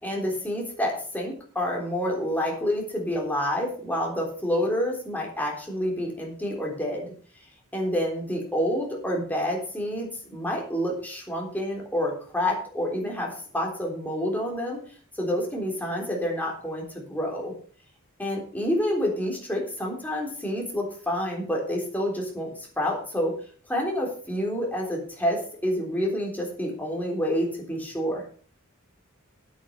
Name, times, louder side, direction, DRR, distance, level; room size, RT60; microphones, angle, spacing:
voice 1, 0.0-7.1 7.7-14.8 15.2-17.5 18.2-23.3 23.7-28.2, equal, 10° left, -2 dB, 3.7 m, -28 dB
9.8 x 9.2 x 5.6 m, 0.44 s
head